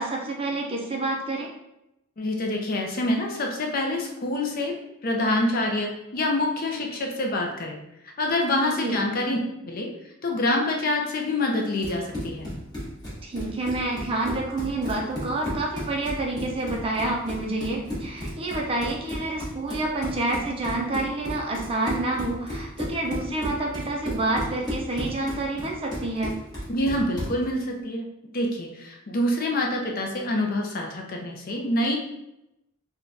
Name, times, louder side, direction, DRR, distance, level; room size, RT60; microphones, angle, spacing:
voice 1, 0.0-1.5 8.6-9.0 13.2-26.3, right 2 dB, 25° right, 0 dB, 0.4 m, -28 dB
voice 2, 2.2-4.7 5.0-7.8 8.2-9.4 9.6-9.9 10.2-12.5 26.7-28.1 28.3-32.0, left 1 dB, 45° left, 1 dB, 0.5 m, -26 dB
Run, 11.6-27.4, equal, 20° left, 1.1 m, -34 dB
3.6 x 2.2 x 2.6 m, 0.87 s
head